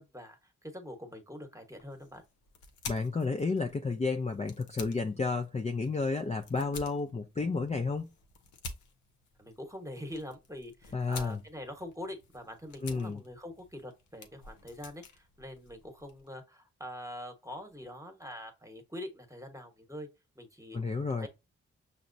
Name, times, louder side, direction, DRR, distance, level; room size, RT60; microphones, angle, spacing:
voice 1, 0.0-2.2 9.4-20.1 20.3-21.3, left 1 dB, 10° right, 1.2 m, -44 dB
sound 1, 1.7-16.3, left 4 dB, 85° left, 0.6 m, -50 dB
voice 2, 2.9-8.1 10.9-11.4 12.8-13.2 20.7-21.3, left 4 dB, 25° left, 0.5 m, -31 dB
5.8 x 2.1 x 2.6 m
supercardioid pair, 45°, 29 cm